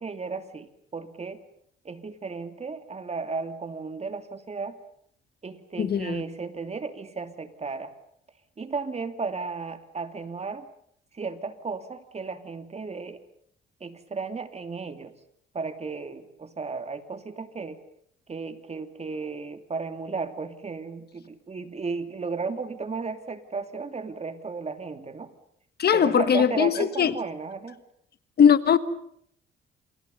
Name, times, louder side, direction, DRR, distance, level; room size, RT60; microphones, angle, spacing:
voice 1, 0.0-1.4 1.8-4.8 5.4-7.9 8.6-10.7 11.1-13.2 13.8-15.1 15.5-17.8 18.3-25.3 25.9-27.8, right 4 dB, 35° right, 2.8 m, -34 dB
voice 2, 5.8-6.2 25.8-27.1 28.4-28.8, left 8 dB, 55° left, 1.5 m, -20 dB
28.0 x 28.0 x 5.5 m
cardioid pair, 90°, 20 cm